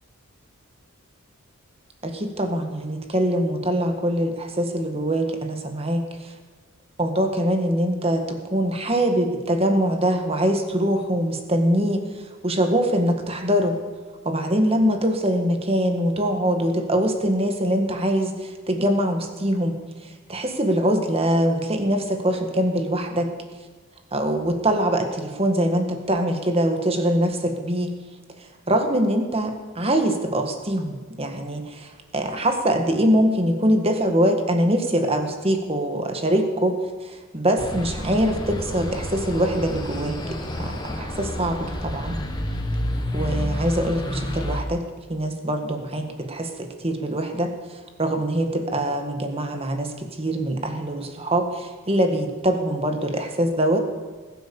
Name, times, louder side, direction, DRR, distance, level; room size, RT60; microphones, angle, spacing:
voice 1, 2.0-6.0 7.0-12.0 12.4-13.8 14.3-19.8 20.3-23.3 24.1-27.9 28.7-36.8 37.1-42.2 43.1-44.8 45.1-47.5 48.0-53.8, right 1 dB, 25° right, 5 dB, 1.7 m, -23 dB
sound 1, 37.6-44.6, left 1 dB, 20° left, 1.6 m, -29 dB
20.5 x 9.3 x 7.1 m, 1.4 s
head